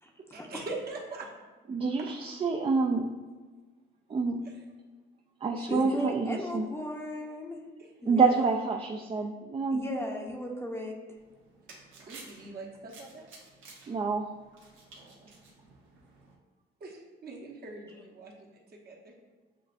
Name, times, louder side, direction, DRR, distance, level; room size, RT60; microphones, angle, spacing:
voice 1, 0.3-1.3 1.8-2.0 4.4-4.5 7.8-7.9 12.0-13.3 15.0-15.3 16.8-19.1, right 3 dB, 55° right, -2 dB, 1.0 m, -43 dB
voice 2, 1.7-3.1 4.1-4.4 5.4-6.7 8.0-9.8 13.9-14.3, right 4 dB, 30° right, 2 dB, 0.3 m, -27 dB
voice 3, 5.6-7.6 8.0-8.4 9.7-10.9, left 1 dB, 10° left, 1 dB, 0.6 m, -36 dB
sound 1, 11.2-16.3, right 3 dB, 85° right, 1.0 m, -53 dB
7.3 x 2.5 x 2.5 m, 1.3 s
cardioid pair, 90°, 20 cm